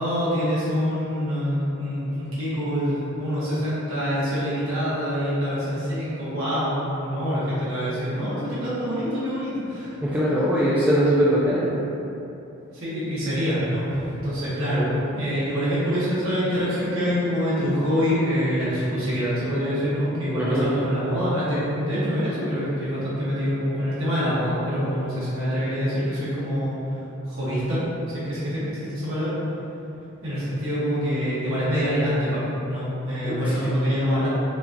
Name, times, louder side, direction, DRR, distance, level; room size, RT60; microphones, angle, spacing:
voice 1, 0.0-9.9 12.7-26.7 27.2-27.8 28.1-29.3 30.2-34.3, equal, 75° right, -11 dB, 1.1 m, -25 dB
voice 2, 10.0-11.8 14.8-15.0 20.3-20.6 33.2-33.7, equal, 5° right, -9 dB, 0.3 m, -22 dB
5.6 x 2.3 x 2.6 m, 2.9 s
head